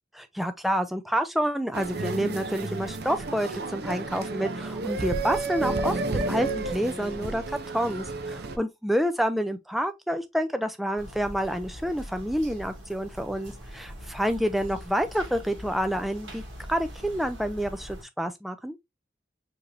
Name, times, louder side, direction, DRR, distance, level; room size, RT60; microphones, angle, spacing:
voice 1, 0.2-16.4 16.7-18.8, equal, ahead, 0.3 m, -28 dB
sound 1, 1.7-8.6, right 3 dB, 55° right, 0.5 m, -31 dB
sound 2, 11.0-18.0, equal, 75° right, 1.5 m, -43 dB
4.8 x 3.0 x 2.5 m
head